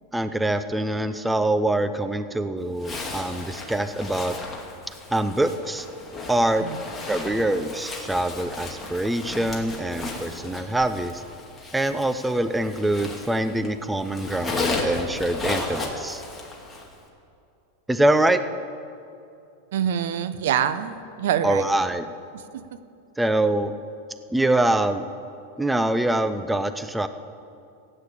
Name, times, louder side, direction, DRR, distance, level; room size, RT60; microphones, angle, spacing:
voice 1, 0.1-4.3 5.1-5.9 6.3-6.6 7.1-11.2 11.7-16.2 17.9-18.4 21.4-22.1 23.2-23.8 24.3-25.1 25.6-27.1, right 1 dB, 5° right, 11 dB, 0.5 m, -24 dB
Zipper (clothing), 2.8-13.7 14.0-16.9, left 3 dB, 10° left, 2.2 m, -34 dB
voice 2, 19.7-21.7 22.5-22.6, right 9 dB, 75° right, 13 dB, 0.8 m, -25 dB
15.0 x 8.7 x 8.5 m, 2.6 s
supercardioid pair, 135°, 0 cm